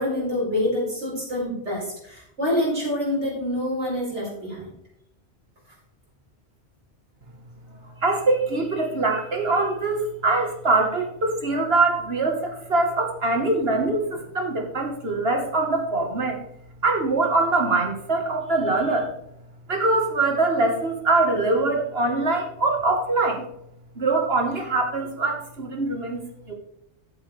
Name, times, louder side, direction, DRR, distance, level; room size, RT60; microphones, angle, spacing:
voice 1, 0.0-4.7 7.8-7.9, left 1 dB, 85° right, -5 dB, 5.4 m, -26 dB
voice 2, 8.0-16.4 16.8-19.1 19.7-23.5 23.9-26.2 26.5-26.6, right 3 dB, 60° right, 2 dB, 1.7 m, -23 dB
13.5 x 8.0 x 3.3 m, 0.77 s
omnidirectional pair, 1.2 m